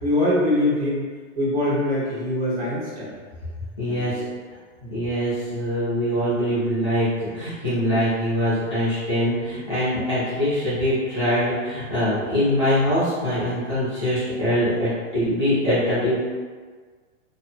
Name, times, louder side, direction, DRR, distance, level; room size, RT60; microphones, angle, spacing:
voice 1, 0.0-1.1 1.4-3.1 3.9-4.3 4.8-4.9, left 1 dB, 30° right, -9 dB, 0.7 m, -23 dB
voice 2, 3.8-4.2 4.9-16.2, equal, 25° left, -16 dB, 0.4 m, -23 dB
2.5 x 2.2 x 2.4 m, 1.5 s
hypercardioid pair, 170°, 39 cm